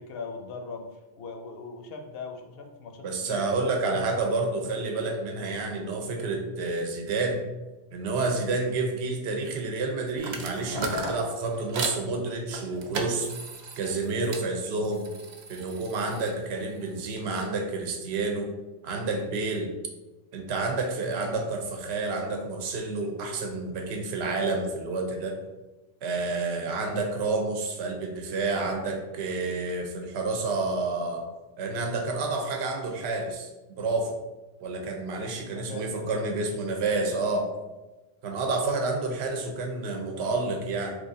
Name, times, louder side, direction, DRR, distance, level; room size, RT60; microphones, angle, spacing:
voice 1, 0.0-3.5 3.9-4.7 10.7-11.3 35.2-36.2 36.9-37.2 37.5-37.6, left 4 dB, 70° left, 4 dB, 0.7 m, -40 dB
voice 2, 3.0-7.4 7.9-13.3 13.8-15.1 15.5-18.5 18.8-19.7 20.3-25.3 26.0-31.2 31.6-34.1 34.6-37.4 38.2-40.9, right 3 dB, 80° right, 2 dB, 0.9 m, -29 dB
sound 1, 10.2-12.0 12.5-14.5 14.8-17.5, right 3 dB, 55° right, 0.5 m, -37 dB
3.2 x 2.5 x 3.7 m, 1.1 s
omnidirectional pair, 1.1 m